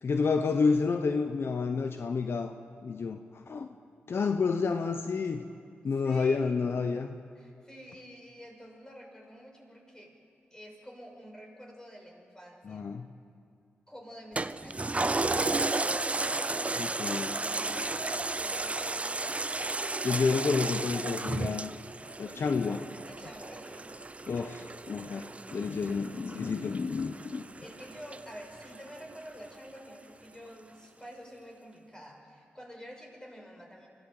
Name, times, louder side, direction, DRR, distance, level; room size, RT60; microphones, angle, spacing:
voice 1, 0.0-2.5 2.8-3.7 4.1-5.4 5.8-7.1 12.6-13.1 16.8-17.4 20.0-21.7 22.2-22.8 24.3-25.3 25.5-27.5, left 4 dB, 65° left, 7 dB, 0.9 m, -29 dB
voice 2, 6.0-6.9 7.3-10.1 10.5-12.8 13.9-19.4 19.9-20.6 23.1-23.9 27.3-33.9, equal, 15° left, 1 dB, 6.1 m, -48 dB
Toilet flush, 14.4-29.2 29.6-29.7, right 2 dB, 30° right, 0.7 m, -34 dB
24.5 x 15.5 x 7.9 m, 2.4 s
cardioid pair, 45°, 4 cm